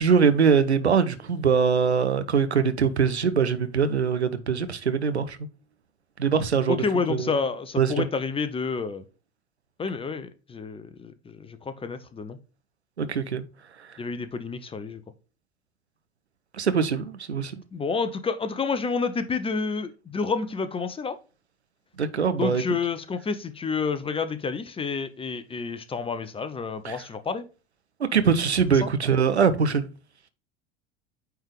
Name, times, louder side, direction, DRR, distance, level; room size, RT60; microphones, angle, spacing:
voice 1, 0.0-5.4 6.2-6.8 7.1-7.3 7.8-8.0 13.0-13.4 16.6-17.5 22.0-22.6 26.8-27.0 28.1-29.9, right 6 dB, 85° right, 0.7 m, -22 dB
voice 2, 6.7-9.0 9.8-12.4 14.0-15.0 17.7-21.2 22.4-27.4 28.7-28.9, left 4 dB, 15° left, 0.7 m, -29 dB
8.9 x 3.6 x 3.2 m
figure-of-eight pair, 70°, 32 cm